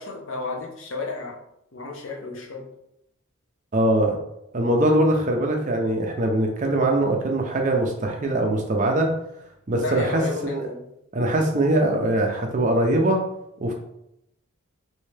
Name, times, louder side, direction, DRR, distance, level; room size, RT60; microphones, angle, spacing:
voice 1, 0.0-1.4 1.7-2.6 9.7-10.8, left 3 dB, 65° left, 0 dB, 0.8 m, -32 dB
voice 2, 3.7-4.2 4.5-9.1 9.7-10.6 11.1-13.2 13.6-13.7, right 1 dB, 35° right, 2 dB, 0.5 m, -22 dB
3.3 x 2.7 x 3.2 m, 0.79 s
head